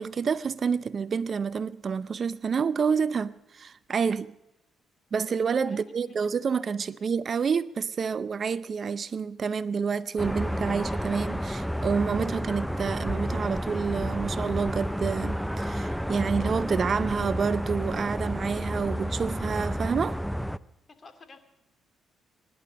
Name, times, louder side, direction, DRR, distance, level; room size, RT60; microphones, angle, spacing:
voice 1, 0.0-4.3 5.1-20.2, right 6 dB, 45° right, 0.5 m, -28 dB
voice 2, 5.7-6.2 6.9-7.1 21.0-21.4, left 3 dB, 35° left, 2.6 m, -52 dB
sound 1, 10.2-20.6, equal, ahead, 0.5 m, -30 dB
24.0 x 11.0 x 5.2 m
cardioid pair, 90°, 0 cm